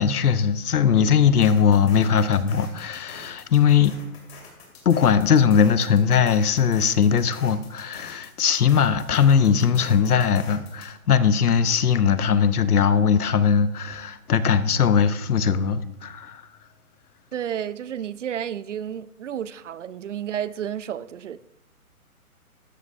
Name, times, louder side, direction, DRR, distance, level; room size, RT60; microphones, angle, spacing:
voice 1, 0.0-4.0 4.8-16.4, left 7 dB, 85° left, 0.9 m, -20 dB
sound 1, 1.4-11.0, left 4 dB, 45° left, 2.8 m, -45 dB
voice 2, 17.3-21.4, right 9 dB, 55° right, 0.5 m, -31 dB
13.0 x 9.7 x 2.7 m
hypercardioid pair, 165°, 44 cm